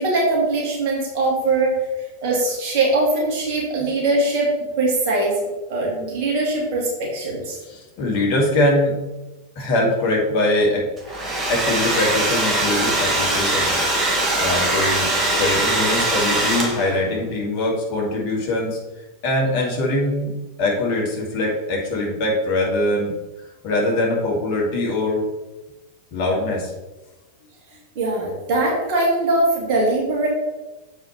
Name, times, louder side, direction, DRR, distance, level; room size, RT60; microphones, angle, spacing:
voice 1, 0.0-1.7 2.2-4.5 4.8-5.4 5.7-7.6 27.9-30.3, right 2 dB, 45° right, -3 dB, 2.5 m, -21 dB
voice 2, 7.6-8.9 9.6-13.8 14.4-15.1 15.3-18.8 19.2-20.3 20.6-23.1 23.6-25.2 26.1-26.7, left 1 dB, 45° left, -2 dB, 2.2 m, -22 dB
Domestic sounds home sounds, 11.0-17.0, right 1 dB, 20° right, 1.7 m, -21 dB
7.4 x 4.7 x 4.4 m, 1.1 s
figure-of-eight pair, 90°, 0 cm